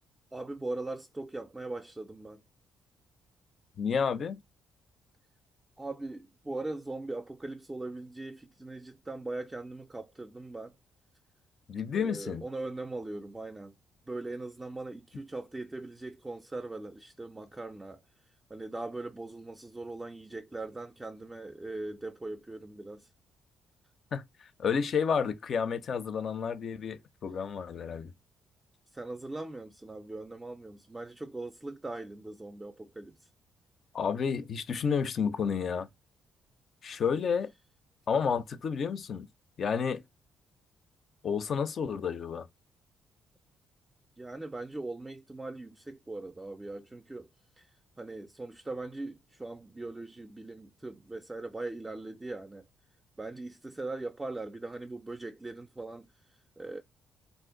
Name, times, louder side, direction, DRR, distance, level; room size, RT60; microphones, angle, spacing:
voice 1, 0.3-2.4 5.8-10.7 11.9-13.7 14.1-18.0 18.5-23.1 28.9-33.2 44.2-47.3 47.6-47.7 48.0-52.7 53.2-56.1 56.6-56.8, right 2 dB, 15° right, 0.4 m, -40 dB
voice 2, 3.8-4.4 11.7-12.4 24.1-24.2 24.6-28.1 33.9-35.9 36.8-37.5 38.1-39.3 39.6-40.0 41.2-42.5, left 6 dB, 55° left, 0.5 m, -30 dB
2.5 x 2.1 x 3.7 m
cardioid pair, 90°, 0 cm